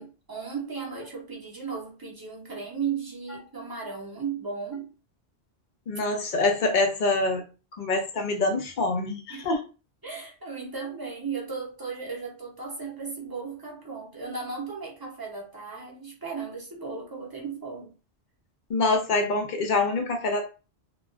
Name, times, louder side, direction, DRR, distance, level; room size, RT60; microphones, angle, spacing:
voice 1, 0.0-4.9 9.3-9.5 10.0-17.9, right 5 dB, 25° right, 0.6 m, -35 dB
voice 2, 5.9-7.5 7.8-9.6 18.7-20.5, left 3 dB, 55° left, 0.6 m, -25 dB
2.3 x 2.3 x 2.3 m
omnidirectional pair, 1.1 m